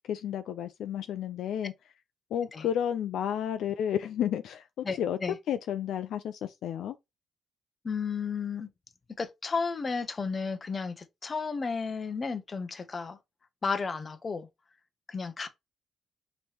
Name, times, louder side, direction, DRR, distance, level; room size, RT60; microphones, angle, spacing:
voice 1, 0.1-1.7 2.3-5.2 5.5-7.0, left 9 dB, 75° left, 0.3 m, -31 dB
voice 2, 4.8-5.4 7.8-8.7 9.2-13.2 13.6-14.5 15.1-15.5, left 5 dB, 35° left, 0.7 m, -33 dB
5.2 x 3.0 x 2.8 m
cardioid pair, 90°, 0 cm